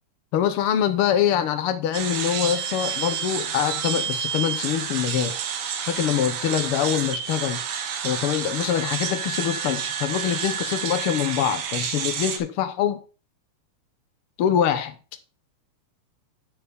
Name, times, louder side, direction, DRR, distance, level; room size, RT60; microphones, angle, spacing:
voice 1, 0.3-5.4 5.9-7.6 8.0-13.0 14.4-14.9, left 9 dB, 80° left, 1.2 m, -24 dB
sound 1, 1.9-12.4, right 7 dB, 80° right, 2.8 m, -29 dB
11.0 x 4.8 x 5.1 m
omnidirectional pair, 3.7 m